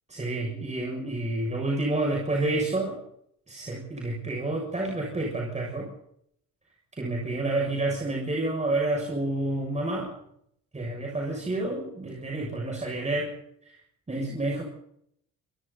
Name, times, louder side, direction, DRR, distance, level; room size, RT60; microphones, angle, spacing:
voice 1, 0.1-3.0 3.5-5.9 6.9-10.1 10.7-13.3 13.6-13.8 14.1-14.6, right 2 dB, 25° right, 0 dB, 7.2 m, -29 dB
27.0 x 26.0 x 4.2 m, 0.73 s
cardioid pair, 90°, 30 cm